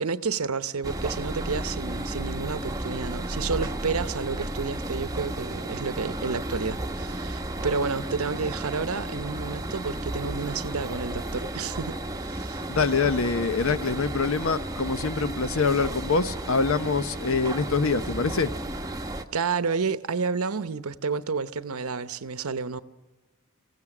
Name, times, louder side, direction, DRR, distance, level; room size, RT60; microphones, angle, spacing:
voice 1, 0.0-12.6 19.3-22.8, right 5 dB, 75° right, 0.8 m, -30 dB
sound 1, 0.8-19.2, right 1 dB, 15° right, 1.0 m, -33 dB
voice 2, 12.7-18.5, left 4 dB, 65° left, 0.8 m, -25 dB
26.5 x 16.0 x 6.0 m
head